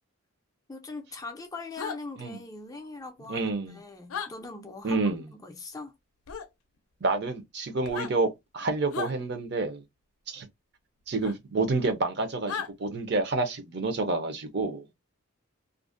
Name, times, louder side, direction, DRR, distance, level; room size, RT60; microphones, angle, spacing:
voice 1, 0.7-5.0 5.4-6.0, left 3 dB, 15° left, 0.3 m, -41 dB
sound 1, 1.8-2.0 4.1-4.3 6.3-6.5 7.8-8.1 8.9-9.1 11.2-11.3 12.5-12.7, left 7 dB, 80° left, 0.5 m, -34 dB
voice 2, 3.3-3.8 4.8-5.2 7.0-9.8 10.3-10.5 11.1-14.8, right 3 dB, 50° right, 0.6 m, -29 dB
2.4 x 2.0 x 2.4 m
head